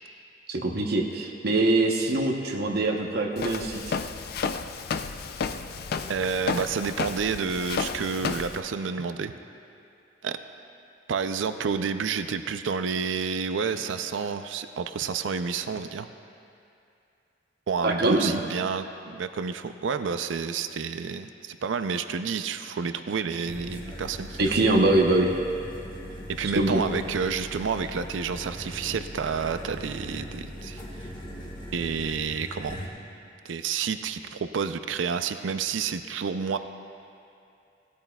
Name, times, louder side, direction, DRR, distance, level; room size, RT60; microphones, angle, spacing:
voice 1, 0.5-4.0 17.8-18.4 24.4-25.3 26.5-26.8, right 2 dB, 60° right, 0 dB, 0.9 m, -23 dB
Walk footsteps, 3.4-8.6, left 5 dB, 55° left, 0.4 m, -32 dB
voice 2, 6.1-9.3 10.2-10.4 11.1-16.1 17.7-24.7 26.3-31.1 31.7-32.8 33.4-36.6, right 5 dB, 90° right, 10 dB, 0.5 m, -30 dB
sound 1, 23.4-32.9, equal, 25° left, 1.4 m, -40 dB
17.5 x 13.0 x 2.3 m, 2.6 s
head